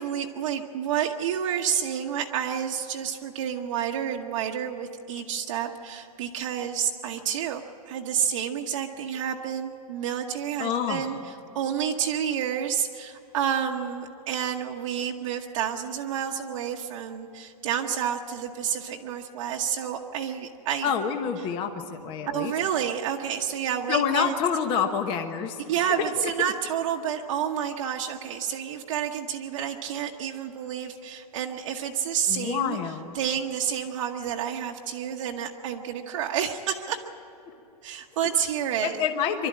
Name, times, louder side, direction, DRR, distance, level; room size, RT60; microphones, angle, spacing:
voice 1, 0.0-20.9 22.3-24.3 25.7-32.8 33.1-37.0 37.8-39.0, right 9 dB, 50° right, 1 dB, 1.1 m, -29 dB
voice 2, 10.6-11.1 20.8-22.5 23.9-26.3 32.3-33.1 38.8-39.5, left 7 dB, 25° left, 6 dB, 1.0 m, -27 dB
24.5 x 12.5 x 8.7 m, 2.9 s
hypercardioid pair, 160°, 21 cm